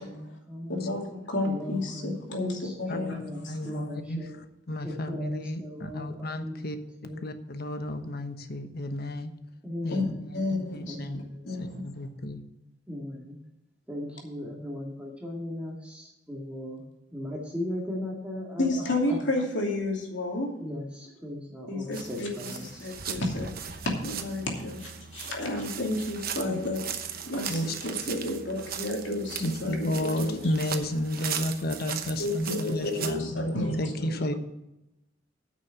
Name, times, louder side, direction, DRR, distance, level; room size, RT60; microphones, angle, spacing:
voice 1, 0.0-0.9 1.4-4.4 4.8-6.7 7.0-7.3 9.6-10.3 10.9-11.5 12.9-13.4 13.9-16.8 17.1-19.2 20.6-23.0, left 1 dB, 5° right, -3 dB, 2.0 m, -38 dB
voice 2, 0.7-2.5 2.8-3.7 9.9-10.1 10.3-10.9 11.4-11.8 18.6-20.6 21.7-26.8 27.2-30.5 32.2-34.4, left 2 dB, 80° left, 0 dB, 2.7 m, -31 dB
voice 3, 3.5-4.2 4.7-6.8 7.2-9.3 9.8-10.0 10.7-11.2 11.6-12.4 26.5-26.6 27.5-27.6 29.4-34.3, left 1 dB, 60° left, 8 dB, 1.1 m, -32 dB
sound 1, 21.9-33.2, right 7 dB, 55° right, 1.0 m, -38 dB
9.4 x 6.3 x 8.1 m, 0.89 s
head